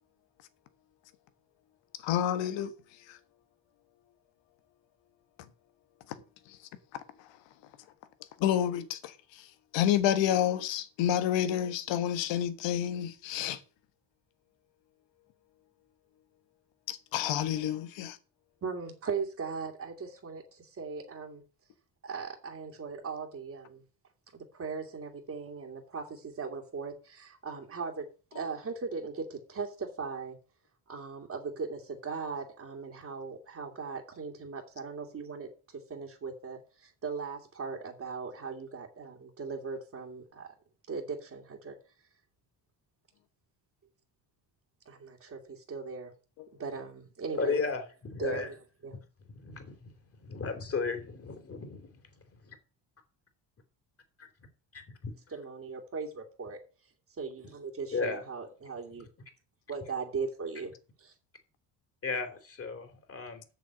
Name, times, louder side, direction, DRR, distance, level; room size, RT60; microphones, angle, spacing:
voice 1, 2.0-2.7 8.4-9.1 9.7-13.6 16.9-18.2, left 10 dB, 90° left, 1.6 m, -29 dB
voice 2, 18.6-21.4 22.0-23.8 24.3-28.1 28.3-30.4 30.9-40.5 40.9-41.8 44.9-46.1 46.5-47.6 48.2-48.6 48.8-49.0 55.3-56.6 57.2-59.1 59.7-60.7 61.0-61.1, right 5 dB, 35° right, 2.4 m, -38 dB
voice 3, 47.4-48.5 48.9-49.0 49.3-52.1 52.4-52.6 54.2-54.3 54.7-55.1 57.9-58.2 62.0-63.4, left 4 dB, 30° left, 3.3 m, -35 dB
7.9 x 6.9 x 8.1 m
cardioid pair, 115°, 43 cm